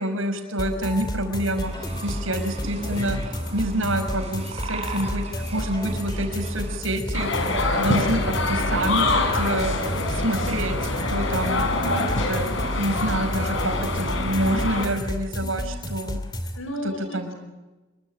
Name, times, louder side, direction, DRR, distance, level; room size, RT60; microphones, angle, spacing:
voice 1, 0.0-1.7 2.0-3.2 3.5-7.5 7.7-10.8 11.1-11.7 12.3-16.2 17.1-17.4, right 1 dB, 75° right, 6 dB, 5.7 m, -27 dB
sound 1, 0.6-16.6, left 1 dB, 20° left, 2.8 m, -31 dB
sound 2, 1.6-6.8, right 2 dB, 30° right, 5.1 m, -37 dB
voice 2, 2.7-3.0 11.5-12.1 15.4-15.8 16.6-17.3, equal, 85° left, 9 dB, 5.2 m, -35 dB
sound 3, 7.1-14.9, left 2 dB, 65° left, 5.2 m, -25 dB
27.0 x 23.5 x 8.9 m, 1.1 s
head